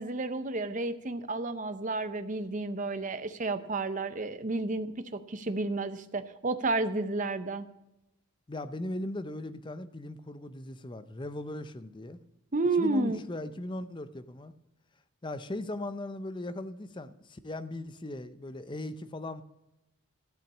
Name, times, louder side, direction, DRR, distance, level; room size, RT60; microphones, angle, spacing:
voice 1, 0.0-7.7 12.5-13.2, right 3 dB, 35° right, 11 dB, 0.6 m, -31 dB
voice 2, 8.5-12.2 12.7-14.5 15.2-19.4, left 1 dB, 20° left, 12 dB, 0.5 m, -38 dB
14.0 x 5.8 x 7.1 m, 0.93 s
head